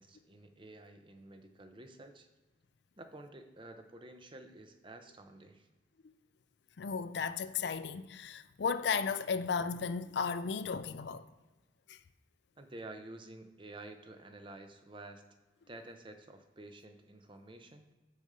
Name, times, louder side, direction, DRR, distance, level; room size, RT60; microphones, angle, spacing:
voice 1, 0.0-2.3 3.0-5.7 12.6-15.2 15.7-17.9, right 2 dB, 25° right, 0.7 m, -50 dB
voice 2, 6.8-11.3 11.9-12.0, left 5 dB, 60° left, 0.4 m, -34 dB
6.4 x 5.2 x 6.6 m
head